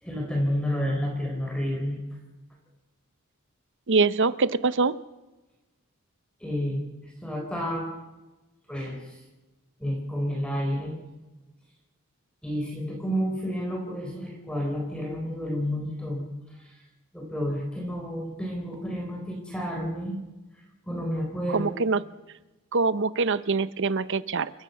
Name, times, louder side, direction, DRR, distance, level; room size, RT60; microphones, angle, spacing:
voice 1, 0.0-2.0 6.4-7.9 8.7-9.2 9.8-11.0 12.4-16.3 16.5-16.7 17.1-20.2 20.9-21.7, equal, 5° left, 0 dB, 4.1 m, -30 dB
voice 2, 3.9-5.0 21.5-22.0 22.7-24.5, right 4 dB, 60° right, 15 dB, 0.8 m, -24 dB
29.5 x 14.0 x 6.9 m, 1.1 s
head